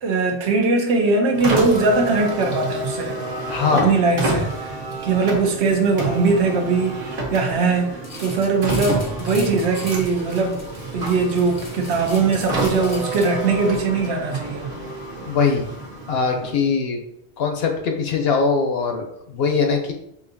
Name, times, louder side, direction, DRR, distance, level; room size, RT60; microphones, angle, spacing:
voice 1, 0.0-3.2 3.7-4.8 5.0-10.6 10.9-14.7, right 4 dB, 75° right, 3 dB, 1.0 m, -20 dB
Car, 1.3-16.7, right 2 dB, 55° right, 1.0 m, -29 dB
voice 2, 3.5-3.9 15.3-15.7 16.1-17.0 17.4-19.9, left 5 dB, 65° left, 3 dB, 0.8 m, -21 dB
sound 1, 8.0-13.7, left 1 dB, 20° left, 0.4 m, -39 dB
5.0 x 2.6 x 2.6 m, 0.77 s
omnidirectional pair, 1.2 m